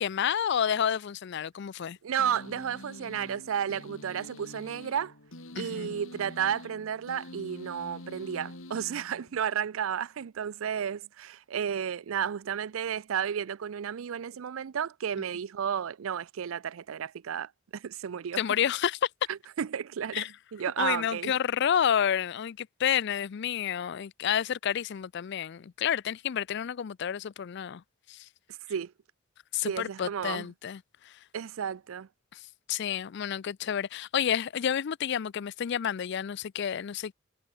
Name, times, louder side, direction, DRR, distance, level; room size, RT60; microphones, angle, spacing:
voice 1, 0.0-2.0 5.6-6.0 18.4-19.1 20.1-20.3 20.8-27.8 28.1-28.2 29.5-30.8 32.3-32.4 32.7-37.1, left 9 dB, 55° left, 0.4 m, -29 dB
voice 2, 2.0-5.1 5.5-18.4 19.3-21.3 28.7-28.9 29.6-30.5 31.3-32.1, right 8 dB, 85° right, 0.4 m, -32 dB
sound 1, 2.2-9.6, left 1 dB, 75° left, 3.7 m, -46 dB
head